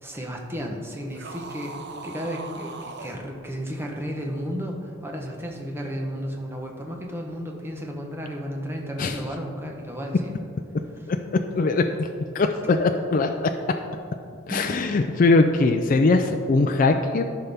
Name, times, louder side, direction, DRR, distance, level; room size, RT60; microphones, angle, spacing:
voice 1, 0.0-1.8 2.0-10.3 12.6-12.8 14.5-14.8, equal, 10° right, 1 dB, 0.8 m, -33 dB
sound 1, 1.1-3.2, right 3 dB, 50° right, 0.6 m, -39 dB
voice 2, 11.6-12.1 12.3-13.5 14.5-17.2, left 3 dB, 40° left, 5 dB, 0.3 m, -21 dB
13.0 x 5.6 x 3.5 m, 2.3 s
head